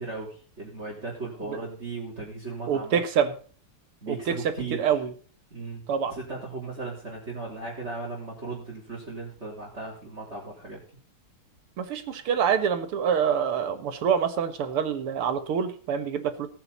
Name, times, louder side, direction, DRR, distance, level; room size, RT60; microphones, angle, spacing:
voice 1, 0.0-3.3 4.0-5.0 5.5-10.8, right 3 dB, 30° right, -4 dB, 3.8 m, -37 dB
voice 2, 2.7-3.3 4.1-4.4 4.8-5.1 5.9-6.1 11.8-16.5, right 7 dB, 85° right, 10 dB, 2.4 m, -26 dB
18.0 x 9.0 x 4.0 m, 0.41 s
omnidirectional pair, 2.4 m